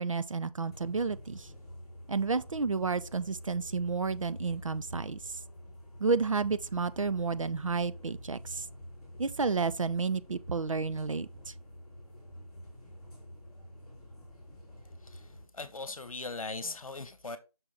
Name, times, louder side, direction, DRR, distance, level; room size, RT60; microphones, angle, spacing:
voice 1, 0.0-1.5 2.1-5.2 6.0-8.6 9.2-11.5, right 4 dB, 60° right, 0.5 m, -31 dB
sound 1, 0.7-15.5, equal, 5° left, 2.1 m, -48 dB
voice 2, 15.5-17.4, left 3 dB, 65° left, 1.1 m, -39 dB
6.2 x 3.8 x 4.7 m
figure-of-eight pair, 175°, 19 cm